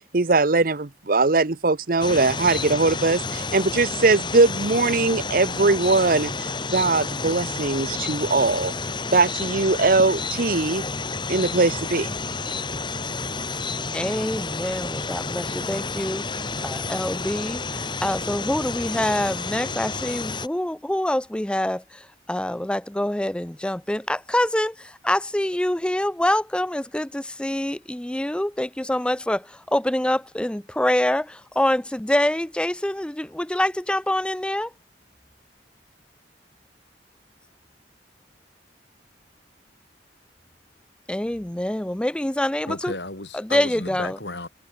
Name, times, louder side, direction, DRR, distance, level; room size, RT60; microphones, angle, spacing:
voice 1, 0.1-8.7 9.1-10.9 11.3-12.1, right 3 dB, 50° right, 0.9 m, -21 dB
sound 1, 2.0-20.5, left 4 dB, 25° left, 2.2 m, -30 dB
voice 2, 13.9-16.2 16.6-21.8 22.3-24.7 25.0-29.4 29.7-34.7 41.1-42.9 43.5-44.1, left 1 dB, 5° left, 0.4 m, -25 dB
voice 3, 42.7-44.5, left 2 dB, 70° left, 7.8 m, -34 dB
head